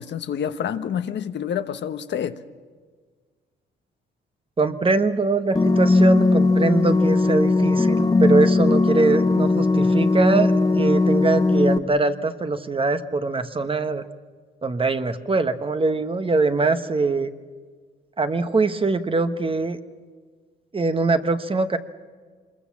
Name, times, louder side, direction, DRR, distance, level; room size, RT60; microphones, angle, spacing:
voice 1, 0.0-2.4, left 8 dB, 60° left, 1.1 m, -28 dB
voice 2, 4.6-14.1 14.6-17.3 18.2-19.8 20.7-21.8, right 3 dB, 25° right, 1.3 m, -22 dB
sound 1, 5.6-11.8, left 3 dB, 20° left, 0.8 m, -19 dB
25.5 x 22.0 x 7.3 m
cardioid pair, 90°, 20 cm